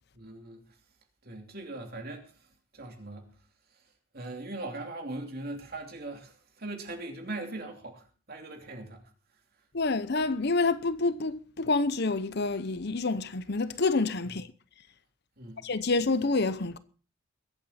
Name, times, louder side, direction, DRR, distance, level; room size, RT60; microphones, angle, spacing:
voice 1, 0.1-0.6 1.2-2.5 2.7-3.3 4.1-9.1 15.4-15.6, right 2 dB, 45° right, 3.0 m, -40 dB
voice 2, 9.7-14.5 15.6-16.8, left 3 dB, 50° left, 0.8 m, -28 dB
22.0 x 8.7 x 4.3 m
head